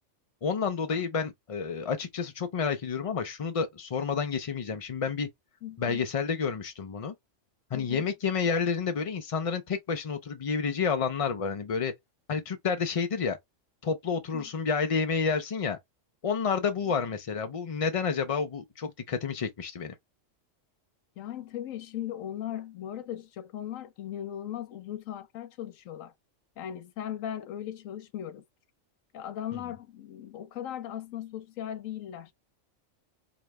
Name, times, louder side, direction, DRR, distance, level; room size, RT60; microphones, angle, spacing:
voice 1, 0.4-5.3 5.8-7.1 7.7-11.9 12.3-13.4 13.8-15.8 16.2-19.9 29.5-29.6, left 5 dB, 60° left, 0.3 m, -30 dB
voice 2, 5.6-6.0 7.7-8.0 14.3-14.5 21.2-26.1 26.6-28.4 29.1-32.3, left 11 dB, 85° left, 1.1 m, -38 dB
4.9 x 2.2 x 3.1 m
omnidirectional pair, 1.3 m